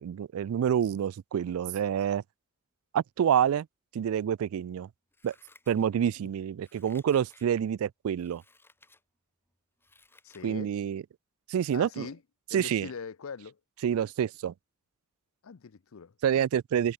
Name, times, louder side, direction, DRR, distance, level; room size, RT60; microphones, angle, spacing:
voice 1, 0.0-2.2 2.9-3.7 3.9-4.9 5.2-5.3 5.7-8.4 10.4-11.0 11.5-12.1 12.5-12.9 13.8-14.5 16.2-16.9, right 9 dB, 75° right, 0.3 m, -27 dB
Scissors, 5.1-6.2 6.6-7.6 8.2-9.0 9.5-10.5 10.9-11.0, left 2 dB, 10° left, 5.0 m, -60 dB
voice 2, 10.2-10.7 11.7-12.2 12.5-13.6 15.4-16.1, left 5 dB, 70° left, 0.6 m, -42 dB
head